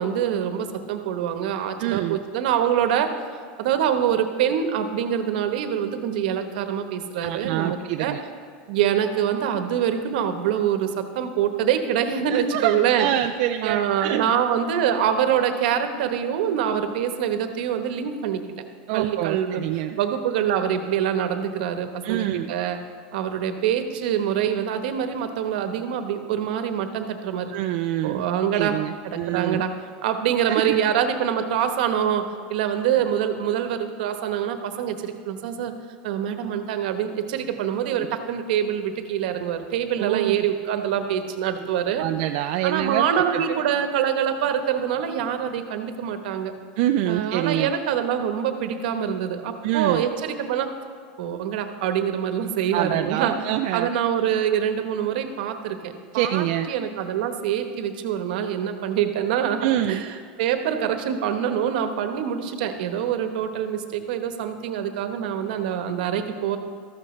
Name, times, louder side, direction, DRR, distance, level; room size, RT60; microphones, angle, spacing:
voice 1, 0.0-3.1 3.6-8.2 8.7-13.1 13.6-18.4 18.9-19.6 20.0-22.8 23.1-27.5 28.0-29.7 30.0-32.2 32.5-35.7 36.0-42.0 42.6-46.5 47.1-50.7 51.2-53.4 53.7-66.6, right 9 dB, 65° right, 7 dB, 1.1 m, -25 dB
voice 2, 1.8-2.2 7.2-8.2 12.3-14.3 18.9-20.0 22.0-22.5 27.5-28.2 28.5-29.6 30.4-30.8 40.0-40.4 42.0-43.6 46.8-47.7 49.6-50.0 52.7-53.9 56.1-56.7 59.6-60.0, right 13 dB, 50° right, 6 dB, 0.4 m, -26 dB
13.5 x 13.0 x 3.2 m, 2.1 s
supercardioid pair, 165°, 5 cm